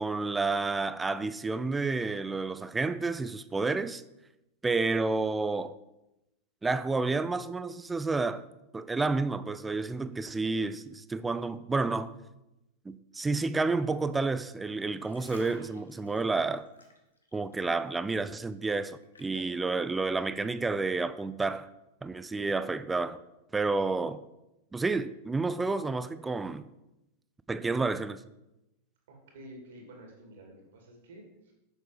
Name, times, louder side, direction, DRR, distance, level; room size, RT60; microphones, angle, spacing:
voice 1, 0.0-4.0 4.6-5.7 6.6-8.4 8.7-12.1 12.8-16.7 17.3-21.7 22.0-23.2 23.5-24.2 24.7-26.7 27.5-28.2, right 3 dB, 10° right, 0.5 m, -30 dB
sound 1, 14.8-17.9 18.2-19.6 20.2-20.3, left 2 dB, 75° left, 1.3 m, -54 dB
voice 2, 29.1-31.5, right 1 dB, 60° right, 2.5 m, -50 dB
7.7 x 6.4 x 5.0 m
figure-of-eight pair, 90°, 0 cm